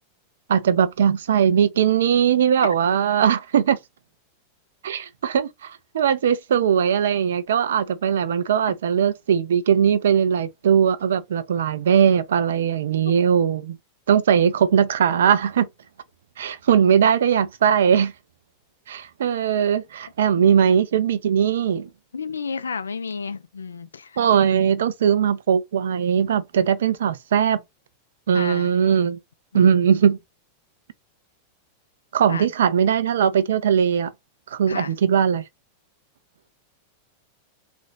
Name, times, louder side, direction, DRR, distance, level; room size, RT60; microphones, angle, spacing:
voice 1, 0.5-3.8 4.8-13.8 14.1-15.7 16.4-18.1 18.9-21.9 24.2-27.6 28.3-29.2 29.5-30.2 32.1-34.1 34.5-35.4, right 8 dB, 60° right, 0.5 m, -20 dB
voice 2, 22.1-24.3 28.3-28.7 29.5-29.8 32.3-32.5 34.7-34.9, left 5 dB, 70° left, 0.4 m, -32 dB
3.8 x 2.5 x 2.3 m
figure-of-eight pair, 90°, 0 cm